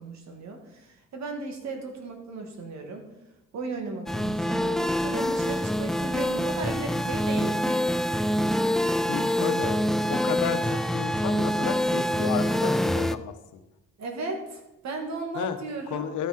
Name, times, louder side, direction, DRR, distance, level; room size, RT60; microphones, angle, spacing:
voice 1, 0.0-3.0 3.5-7.9 8.8-9.6 14.0-16.1, right 3 dB, 65° right, 3 dB, 2.1 m, -36 dB
sound 1, 4.1-13.2, equal, ahead, 0.3 m, -25 dB
voice 2, 9.1-9.8 10.1-13.3 15.3-15.6 15.9-16.3, left 9 dB, 80° left, 8 dB, 1.0 m, -32 dB
13.0 x 6.1 x 4.3 m, 0.94 s
cardioid pair, 90°, 30 cm